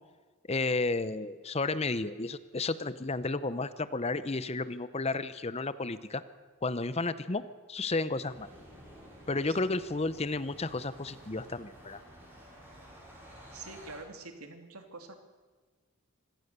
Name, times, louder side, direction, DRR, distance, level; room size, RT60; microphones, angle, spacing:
voice 1, 0.5-6.2 6.6-7.4 7.7-8.5 9.3-12.0, left 3 dB, 30° left, 15 dB, 0.7 m, -32 dB
sound 1, 8.3-14.0, equal, 10° right, 6.5 m, -52 dB
voice 2, 13.5-15.2, right 3 dB, 85° right, 6 dB, 2.8 m, -46 dB
25.5 x 17.0 x 6.8 m, 1.4 s
head